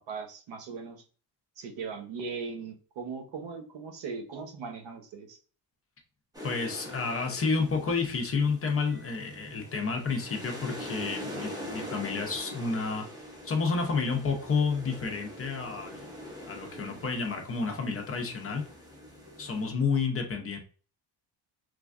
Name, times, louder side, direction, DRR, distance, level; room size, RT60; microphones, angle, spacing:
voice 1, 0.1-1.0 1.6-5.4, right 5 dB, 80° right, 4 dB, 0.9 m, -39 dB
sound 1, 6.3-19.7, left 1 dB, 10° right, 0.8 m, -43 dB
voice 2, 6.4-13.1 13.4-16.1 16.5-18.6 19.4-20.6, left 4 dB, 30° left, 3 dB, 0.6 m, -30 dB
sound 2, 8.9-19.5, right 1 dB, 35° right, 1.5 m, -55 dB
3.2 x 2.3 x 2.4 m, 0.38 s
cardioid pair, 135°, 43 cm